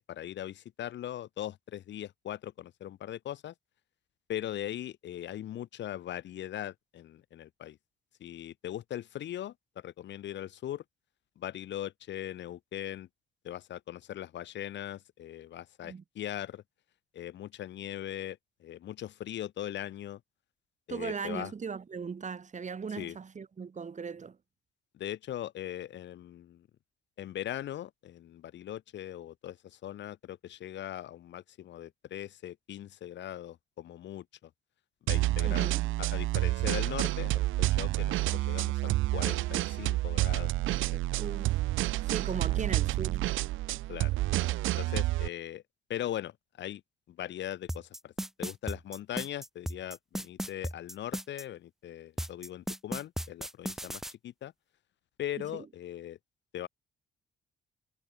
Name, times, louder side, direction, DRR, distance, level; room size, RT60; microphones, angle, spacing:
voice 1, 0.0-3.5 4.3-7.8 8.2-10.8 11.4-13.1 13.4-16.6 17.1-20.2 20.9-21.5 23.0-23.2 24.9-26.7 27.2-34.2 35.0-41.0 42.3-42.6 43.9-44.2 44.8-45.6 45.9-46.8 47.1-48.1 48.4-54.5 55.2-56.2 56.5-56.7, left 12 dB, 65° left, 0.8 m, -40 dB
voice 2, 20.9-24.4 35.4-35.8 41.2-41.6 42.0-43.4 55.5-55.7, right 5 dB, 35° right, 2.6 m, -38 dB
sound 1, 35.1-45.3, right 17 dB, 85° right, 0.6 m, -29 dB
sound 2, 47.7-51.4 52.2-54.1, equal, ahead, 1.2 m, -36 dB
cardioid pair, 90°, 20 cm